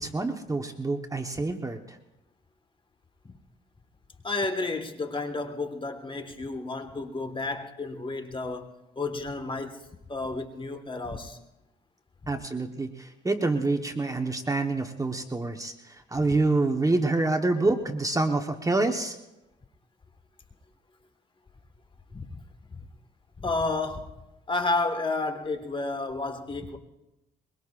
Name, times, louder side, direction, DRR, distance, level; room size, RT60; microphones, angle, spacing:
voice 1, 0.0-2.0 12.3-19.2, right 2 dB, 15° right, 1.1 m, -27 dB
voice 2, 4.2-9.8 10.1-11.4 12.2-12.3 16.2-16.4 22.1-22.4 22.7-22.9 23.4-24.1 24.5-26.8, left 3 dB, 25° left, 1.5 m, -31 dB
22.5 x 22.5 x 2.5 m
cardioid pair, 90°, 20 cm